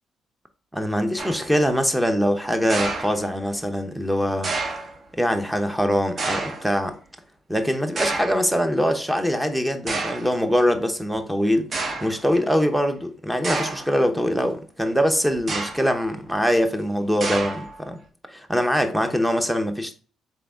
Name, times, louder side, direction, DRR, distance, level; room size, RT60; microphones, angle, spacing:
voice 1, 0.7-4.8 5.2-7.0 7.5-11.7 12.0-18.0 18.3-20.0, equal, 5° right, 0.7 m, -23 dB
sound 1, 1.2-1.6 2.7-3.6 4.4-5.0 6.2-6.7 8.0-8.5 9.3-9.4 9.9-10.3 11.2-11.3 11.7-12.2 13.4-14.0 15.4-16.0 17.2-17.8, right 3 dB, 45° right, 0.9 m, -29 dB
3.7 x 3.6 x 3.4 m
cardioid pair, 90°, 0 cm